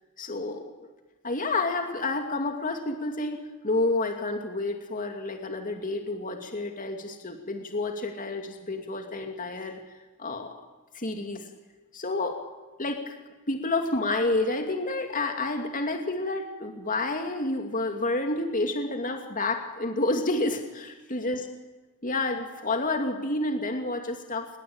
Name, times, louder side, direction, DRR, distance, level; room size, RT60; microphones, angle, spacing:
voice 1, 0.2-0.9 1.2-9.8 10.2-10.5 10.9-11.5 11.9-12.4 12.8-13.2 13.5-21.4 22.0-24.5, left 2 dB, 35° left, 4 dB, 2.6 m, -29 dB
29.0 x 21.5 x 8.9 m, 1.2 s
head